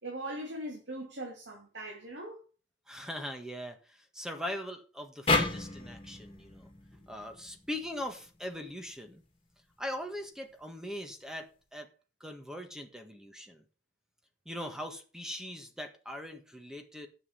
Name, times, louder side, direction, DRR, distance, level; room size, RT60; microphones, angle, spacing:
voice 1, 0.0-2.4, right 1 dB, 75° right, 2.8 m, -40 dB
voice 2, 2.9-9.2 9.8-11.9 12.2-13.6 14.4-17.1, left 1 dB, 5° right, 1.5 m, -41 dB
sound 1, 5.3-8.5, left 3 dB, 30° left, 2.2 m, -33 dB
9.7 x 7.4 x 5.8 m
head